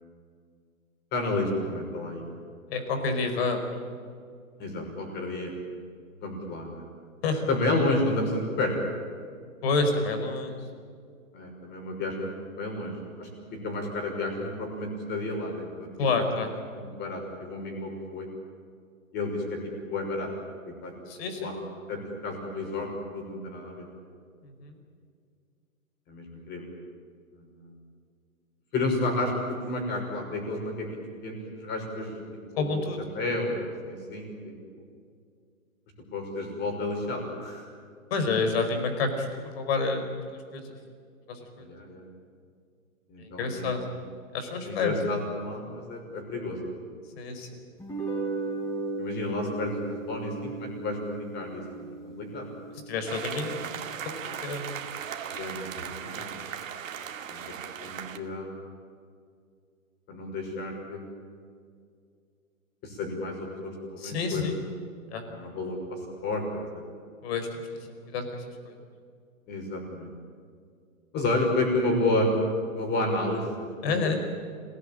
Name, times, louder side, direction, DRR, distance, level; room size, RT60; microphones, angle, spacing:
voice 1, 1.1-2.2 4.6-5.5 6.2-6.9 7.5-8.7 11.3-13.3 13.6-15.9 16.2-16.4 16.7-18.3 19.1-19.6 19.9-20.3 20.6-20.9 21.4-21.5 21.9-23.9 26.1-26.7 27.3-27.7 28.7-30.9 31.2-32.2 32.5-32.8 33.1-34.8 36.1-37.7 41.6-42.1 43.1-43.7 44.6-46.7 49.0-49.8 50.1-52.5 55.3-56.4 57.3-57.4 57.8-58.5 60.1-61.2 62.8-64.5 65.3-66.4 66.7-66.8 69.5-70.1 71.1-72.3 72.7-74.2, left 2 dB, 25° left, 2 dB, 5.9 m, -31 dB
voice 2, 2.7-3.6 7.2-7.5 9.6-10.5 16.0-16.5 21.1-21.5 24.6-24.7 32.6-33.0 38.1-39.3 39.5-40.0 40.3-40.6 41.3-41.6 43.2-43.8 44.3-44.9 47.1-47.5 52.9-53.7 54.0-54.6 64.0-64.6 65.1-65.2 67.2-67.5 68.1-68.7 73.8-74.2, left 4 dB, 45° left, 6 dB, 4.9 m, -28 dB
sound 1, 47.8-54.3, right 3 dB, 10° left, 5.0 m, -36 dB
sound 2, 53.1-58.2, right 8 dB, 65° right, 2.2 m, -37 dB
26.5 x 18.5 x 9.0 m, 2.2 s
hypercardioid pair, 145°, 42 cm